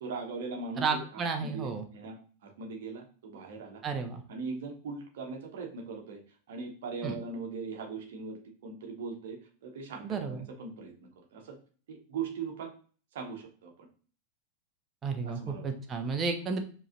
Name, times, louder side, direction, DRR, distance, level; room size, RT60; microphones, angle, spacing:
voice 1, 0.0-3.8 4.3-6.2 6.5-11.6 11.9-12.7 13.1-13.9 15.2-15.7, right 4 dB, 55° right, 2 dB, 1.0 m, -40 dB
voice 2, 0.8-1.8 3.8-4.2 7.0-7.1 10.0-10.5 15.0-16.6, right 4 dB, 25° right, 5 dB, 0.6 m, -32 dB
4.9 x 3.1 x 2.5 m, 0.41 s
figure-of-eight pair, 90°, 0 cm